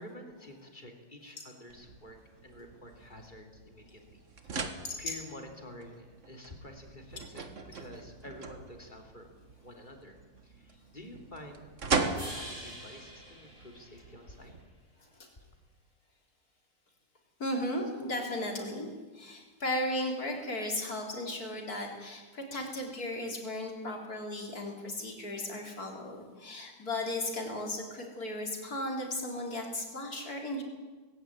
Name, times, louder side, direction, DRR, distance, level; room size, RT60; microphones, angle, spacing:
voice 1, 0.0-4.3 4.6-9.3 9.6-10.2 10.4-11.7 12.0-14.5, left 1 dB, 25° left, 3 dB, 3.1 m, -49 dB
sound 1, 1.7-14.6, right 4 dB, 45° right, 1.8 m, -40 dB
sound 2, 12.2-14.5, equal, 10° right, 6.9 m, -46 dB
voice 2, 17.4-18.9 19.1-30.6, left 1 dB, 50° left, 1 dB, 4.2 m, -35 dB
19.0 x 16.5 x 9.5 m, 1.3 s
omnidirectional pair, 2.0 m